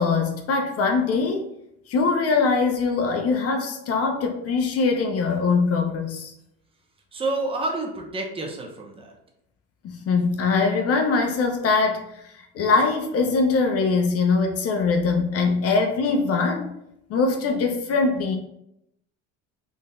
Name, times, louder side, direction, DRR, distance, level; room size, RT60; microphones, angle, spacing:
voice 1, 0.0-1.5 1.9-6.3 9.8-12.2 12.5-16.7 17.1-18.4, left 4 dB, 50° left, 4 dB, 0.5 m, -22 dB
voice 2, 7.1-9.1, right 2 dB, 15° right, 1 dB, 0.7 m, -29 dB
3.8 x 2.6 x 2.3 m, 0.79 s
supercardioid pair, 85°, 32 cm